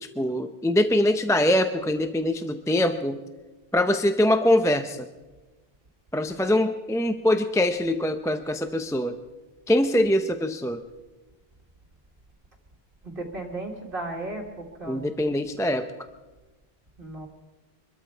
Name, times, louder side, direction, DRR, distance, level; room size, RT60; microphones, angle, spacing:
voice 1, 0.0-3.2 3.7-5.1 6.1-9.2 9.7-10.8 14.9-15.9, left 1 dB, 5° left, 8 dB, 0.4 m, -23 dB
voice 2, 13.0-15.0 17.0-17.3, right 2 dB, 60° right, 2 dB, 1.9 m, -35 dB
24.0 x 13.5 x 4.5 m, 1.2 s
omnidirectional pair, 1.1 m